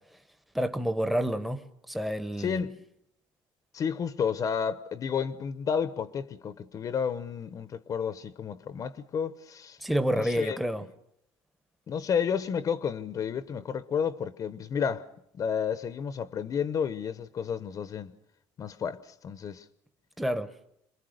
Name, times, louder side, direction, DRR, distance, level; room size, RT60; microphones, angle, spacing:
voice 1, 0.5-2.6 9.8-10.8 20.2-20.5, equal, ahead, 0.9 m, -29 dB
voice 2, 2.4-2.8 3.7-9.8 10.1-10.6 11.9-15.1 15.3-18.1 18.6-19.7, left 7 dB, 35° left, 0.8 m, -31 dB
27.5 x 21.5 x 6.5 m
cardioid pair, 145°, 10 cm